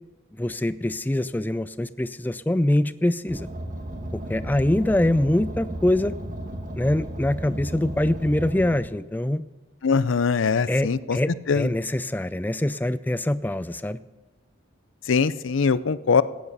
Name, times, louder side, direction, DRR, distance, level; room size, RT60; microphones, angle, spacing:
voice 1, 0.4-3.5 4.1-6.1 6.7-9.4 10.7-14.0, left 1 dB, 10° left, 15 dB, 0.3 m, -24 dB
Car, 3.3-8.8, right 1 dB, 40° right, 1.5 m, -34 dB
voice 2, 9.8-11.2 11.5-11.7 15.1-16.2, left 5 dB, 80° left, 16 dB, 0.5 m, -22 dB
15.0 x 9.5 x 5.5 m, 1.2 s
head